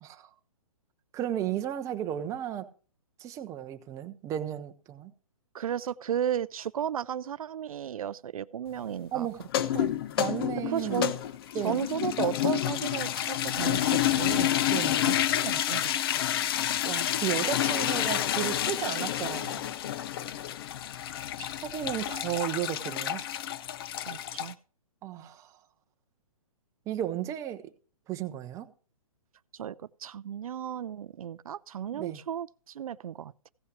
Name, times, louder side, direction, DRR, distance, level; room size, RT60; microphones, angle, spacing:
voice 1, 1.1-2.7 3.2-5.1 9.1-9.5 10.2-11.1 11.5-11.8 14.7-15.0 16.8-19.7 21.6-23.2 25.0-25.5 26.9-27.7 28.1-28.7 31.9-32.2, right 11 dB, 15° right, 0.7 m, -34 dB
voice 2, 5.5-9.3 9.7-9.9 10.7-11.2 11.5-14.5 15.0-16.1 21.1-21.5 24.1-24.6 29.5-29.7 30.0-33.5, right 9 dB, 75° right, 0.4 m, -34 dB
sound 1, 9.4-24.5, left 11 dB, 40° left, 0.6 m, -29 dB
16.0 x 5.6 x 4.7 m
hypercardioid pair, 140°, 18 cm